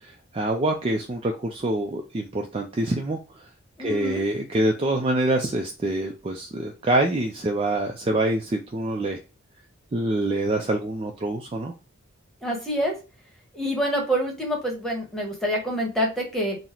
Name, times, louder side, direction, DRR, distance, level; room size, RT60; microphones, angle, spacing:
voice 1, 0.0-3.2 3.8-9.2 9.9-11.7, right 1 dB, 25° right, 2 dB, 0.4 m, -25 dB
voice 2, 3.8-4.2 12.4-12.9 13.5-16.6, equal, ahead, -1 dB, 1.0 m, -26 dB
3.9 x 2.0 x 4.2 m, 0.31 s
head